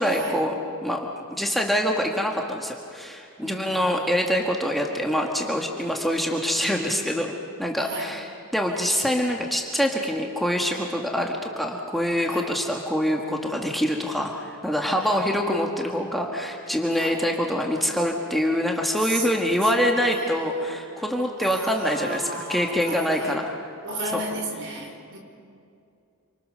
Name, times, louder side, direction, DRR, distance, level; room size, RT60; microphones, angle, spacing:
voice 1, 0.0-7.3 7.6-23.7 24.1-24.2 24.8-24.9, equal, ahead, 0 dB, 1.7 m, -25 dB
voice 2, 3.4-4.1 7.8-8.1 12.3-12.5 15.0-15.2 16.9-17.2 19.0-19.6 20.1-20.2 20.5-20.7 21.4-23.3 23.8-25.2, right 2 dB, 55° right, 2 dB, 4.4 m, -34 dB
28.0 x 25.5 x 6.7 m, 2.5 s
head